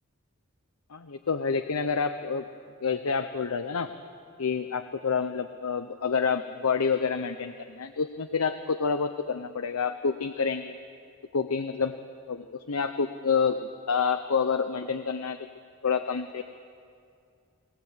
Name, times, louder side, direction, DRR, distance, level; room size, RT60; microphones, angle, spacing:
voice 1, 0.9-2.4 2.8-3.9 4.4-10.7 11.3-11.9 12.3-15.5 15.8-16.4, left 5 dB, 85° left, 8 dB, 0.8 m, -28 dB
20.5 x 18.5 x 8.0 m, 2.4 s
head